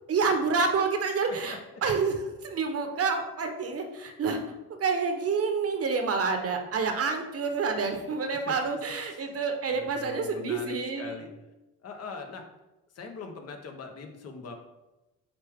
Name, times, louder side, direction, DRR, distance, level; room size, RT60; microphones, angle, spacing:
voice 1, 0.1-4.4 4.8-11.3, right 4 dB, 50° right, 5 dB, 1.1 m, -28 dB
voice 2, 1.2-1.6 8.5-8.6 9.1-9.2 9.7-11.3 11.8-12.4 12.9-14.5, left 4 dB, 55° left, 3 dB, 1.1 m, -41 dB
8.1 x 3.3 x 3.6 m, 1.0 s
cardioid pair, 90°, 30 cm